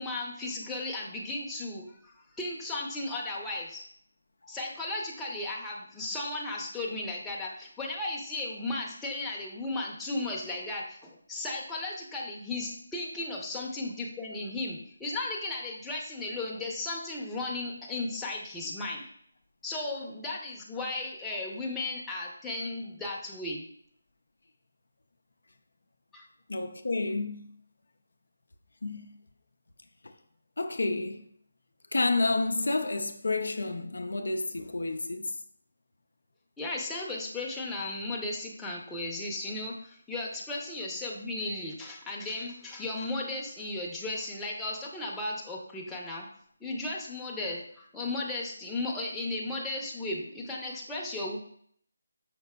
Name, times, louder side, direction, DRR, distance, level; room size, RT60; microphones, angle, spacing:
voice 1, 0.0-3.8 4.5-19.0 19.6-23.6 26.1-26.2 36.6-46.3 46.6-51.4, left 2 dB, 5° left, 0.6 m, -35 dB
voice 2, 26.5-27.4 28.8-29.1 30.6-31.2 31.9-35.4, left 3 dB, 80° left, 0.4 m, -30 dB
5.8 x 4.0 x 2.2 m
figure-of-eight pair, 160°, 0 cm